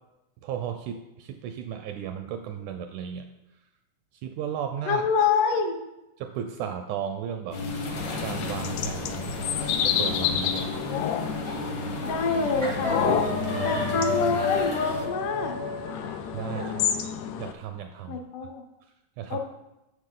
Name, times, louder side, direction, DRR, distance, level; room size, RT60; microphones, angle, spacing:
voice 1, 0.4-3.3 3.5-3.6 4.1-5.0 6.2-7.6 8.2-9.4 9.8-10.8 13.5-13.8 16.3-17.0 17.4-18.2 18.8-19.4, right 9 dB, 80° right, 7 dB, 1.8 m, -35 dB
voice 2, 4.9-5.8 12.0-13.1 13.6-15.6 18.1-18.6 19.3-19.4, left 5 dB, 75° left, 4 dB, 2.3 m, -26 dB
sound 1, 7.5-15.1, left 1 dB, 60° left, 1.2 m, -34 dB
sound 2, 8.0-17.5, left 8 dB, 90° left, 1.6 m, -30 dB
sound 3, 11.5-11.7 12.0-12.3 12.6-16.7, left 3 dB, 50° right, 0.3 m, -32 dB
9.8 x 6.9 x 3.8 m, 0.97 s
omnidirectional pair, 3.9 m